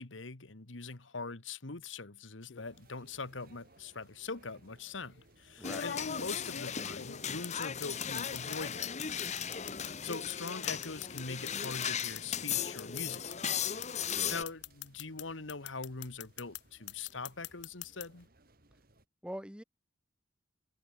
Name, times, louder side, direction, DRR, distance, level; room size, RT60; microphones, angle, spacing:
voice 1, 0.0-9.3 10.0-13.7 14.3-18.3, left 4 dB, 85° left, 1.8 m, -43 dB
sound 1, 2.4-2.8 4.0-4.1 5.6-8.6 8.8-15.2 15.5-16.6 16.9-18.0, left 10 dB, 65° left, 0.5 m, -43 dB
sound 2, 2.7-19.0, right 2 dB, 50° right, 3.6 m, -64 dB
sound 3, 5.6-14.4, left 8 dB, 35° left, 1.0 m, -37 dB
voice 2, 14.0-14.4 19.2-19.6, equal, 5° right, 2.9 m, -43 dB
head